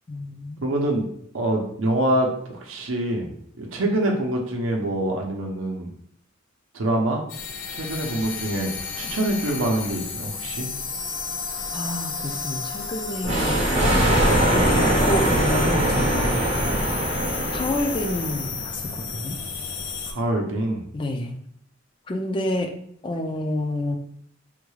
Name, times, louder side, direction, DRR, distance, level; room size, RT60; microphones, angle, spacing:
voice 1, 0.1-0.7 11.7-13.6 14.5-16.4 17.5-19.4 20.9-21.4 22.1-22.7 23.0-24.0, left 1 dB, 25° left, 4 dB, 0.4 m, -28 dB
voice 2, 0.6-1.0 1.3-3.3 3.6-5.9 6.7-7.3 7.7-8.7 9.0-10.7 20.1-20.8, right 1 dB, 80° right, 1 dB, 0.6 m, -25 dB
sound 1, 7.3-20.1, left 5 dB, 80° left, 0.6 m, -32 dB
Thunder, 13.2-18.6, right 1 dB, 35° right, 0.6 m, -22 dB
3.5 x 2.3 x 3.1 m, 0.67 s
head